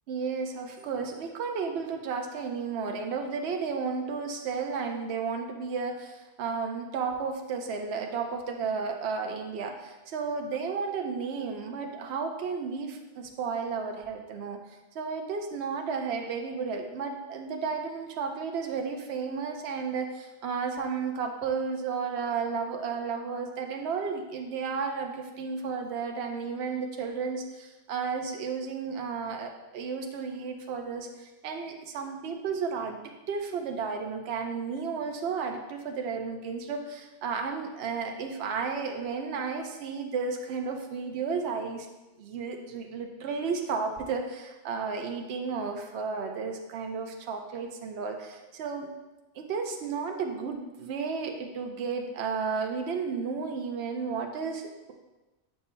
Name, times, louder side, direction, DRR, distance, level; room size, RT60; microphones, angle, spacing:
voice 1, 0.1-14.6 14.9-33.0 33.3-41.9 42.2-48.9 49.3-54.9, right 5 dB, 65° right, 3 dB, 0.9 m, -33 dB
8.0 x 5.5 x 2.2 m, 1.1 s
omnidirectional pair, 1.2 m